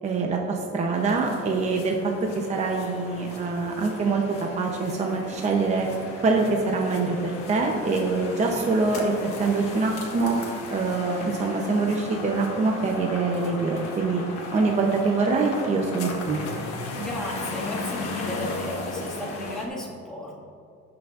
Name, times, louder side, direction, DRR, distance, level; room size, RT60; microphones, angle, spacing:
voice 1, 0.0-5.9 6.2-10.4 10.7-14.2 14.5-16.4, right 3 dB, 25° right, 1 dB, 0.7 m, -24 dB
sound 1, 0.9-19.7, left 3 dB, 50° left, 1.4 m, -36 dB
voice 2, 16.9-20.4, left 1 dB, ahead, -6 dB, 1.8 m, -34 dB
18.0 x 6.1 x 2.5 m, 2.3 s
cardioid pair, 160°, 29 cm